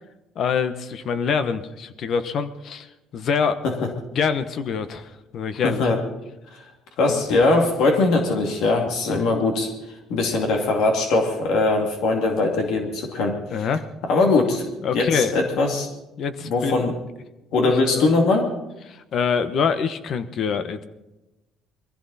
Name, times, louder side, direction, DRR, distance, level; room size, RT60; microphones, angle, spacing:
voice 1, 0.3-3.6 4.1-5.8 7.1-7.2 9.1-9.2 13.5-13.9 14.8-15.3 16.2-16.8 17.6-18.1 18.9-20.8, left 6 dB, 50° left, 11 dB, 1.2 m, -25 dB
voice 2, 5.6-6.0 6.5-6.6 7.0-13.4 14.1-14.7 14.9-15.9 16.4-17.0 17.5-18.5, left 3 dB, 70° left, 2 dB, 2.5 m, -21 dB
22.0 x 15.5 x 4.2 m, 1.0 s
cardioid pair, 120°, 0 cm